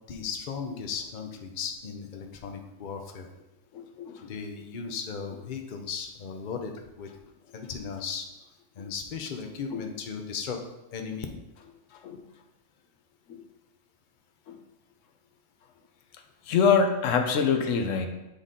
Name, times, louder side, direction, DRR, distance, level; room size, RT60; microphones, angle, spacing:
voice 1, 0.1-3.3 4.2-7.1 7.5-8.3 8.8-10.6 10.9-11.3, left 6 dB, 45° left, 4 dB, 0.8 m, -36 dB
voice 2, 3.7-4.2 9.7-9.8 12.0-12.2 13.3-13.4 14.5-14.6 16.5-18.1, left 6 dB, 85° left, 5 dB, 1.1 m, -25 dB
8.1 x 4.0 x 3.8 m, 0.99 s
omnidirectional pair, 1.3 m